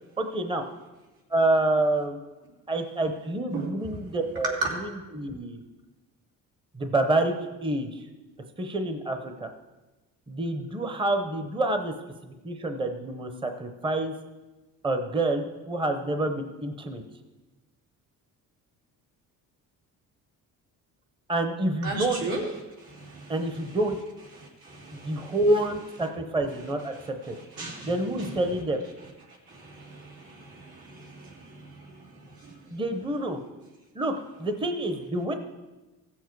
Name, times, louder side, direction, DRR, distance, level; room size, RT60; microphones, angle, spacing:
voice 1, 0.2-0.6 1.3-2.2 2.7-5.6 6.7-7.3 7.6-8.1 8.6-9.5 10.3-11.9 12.2-14.1 14.8-17.0 21.3-22.2 23.3-24.0 25.0-27.3 27.8-28.8 32.7-33.4 33.9-35.3, right 2 dB, 15° right, 6 dB, 0.7 m, -27 dB
voice 2, 21.8-22.4 22.8-23.3 24.4-25.4 27.6-27.9 28.2-28.3 29.5-31.5, right 3 dB, 85° right, -3 dB, 3.2 m, -36 dB
15.5 x 7.3 x 4.6 m, 1.1 s
cardioid pair, 140°, 35 cm